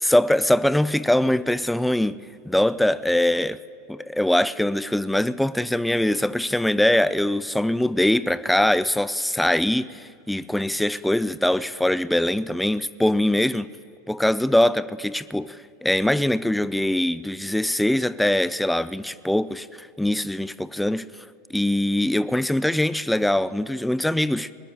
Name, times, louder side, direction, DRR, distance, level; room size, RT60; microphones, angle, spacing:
voice 1, 0.0-2.2 2.5-3.6 3.9-13.7 14.1-21.1 21.5-24.5, left 1 dB, 5° left, 0.5 m, -22 dB
21.5 x 10.0 x 6.4 m
hypercardioid pair, 95°, 0 cm